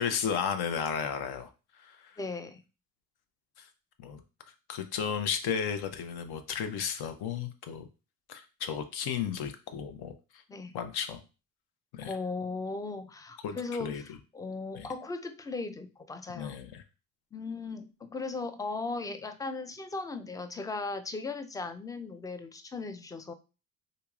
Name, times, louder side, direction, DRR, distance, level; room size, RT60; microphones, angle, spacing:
voice 1, 0.0-2.2 3.6-3.7 4.0-4.2 4.5-7.9 8.3-10.4 10.7-11.2 11.9-12.2 13.4-14.2 14.7-14.9 16.3-16.8, left 7 dB, 60° left, 8 dB, 0.7 m, -34 dB
voice 2, 2.2-2.6 10.5-10.8 12.0-16.6 17.3-23.3, left 3 dB, 10° left, 9 dB, 0.3 m, -37 dB
3.9 x 2.8 x 2.3 m, 0.32 s
hypercardioid pair, 55°, 44 cm